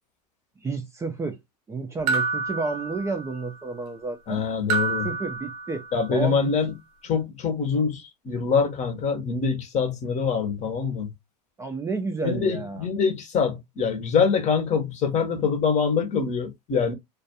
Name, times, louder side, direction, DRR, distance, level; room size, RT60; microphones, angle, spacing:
voice 1, 0.6-1.4 1.7-4.4 5.0-5.9 6.1-6.5 11.6-12.9, right 4 dB, 15° right, 0.4 m, -31 dB
sound 1, 2.1-3.5 4.7-6.1, right 4 dB, 65° right, 0.7 m, -28 dB
voice 2, 4.3-5.1 5.9-6.7 7.0-11.1 12.2-16.9, left 5 dB, 35° left, 0.8 m, -24 dB
2.3 x 2.2 x 2.7 m
hypercardioid pair, 100°, 21 cm